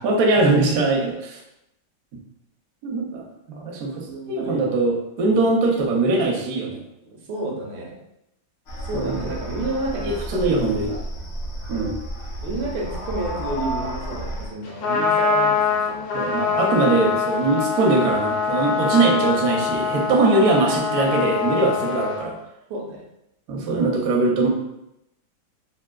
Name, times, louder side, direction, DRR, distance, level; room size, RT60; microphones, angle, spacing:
voice 1, 0.0-1.4 2.8-6.8 8.9-9.2 10.0-10.9 11.7-11.9 16.1-22.3 23.5-24.5, right 3 dB, 70° right, 0 dB, 0.9 m, -21 dB
voice 2, 4.0-4.8 5.3-5.4 7.0-8.0 8.9-11.0 11.7-11.8 12.4-16.1 18.8-19.0 22.7-23.1, right 2 dB, 85° right, 0 dB, 1.4 m, -31 dB
sound 1, 8.7-14.5, equal, 85° left, 0.6 m, -32 dB
Trumpet, 14.6-22.2, left 6 dB, 70° left, 1.1 m, -23 dB
3.3 x 2.5 x 2.2 m, 0.85 s
omnidirectional pair, 2.1 m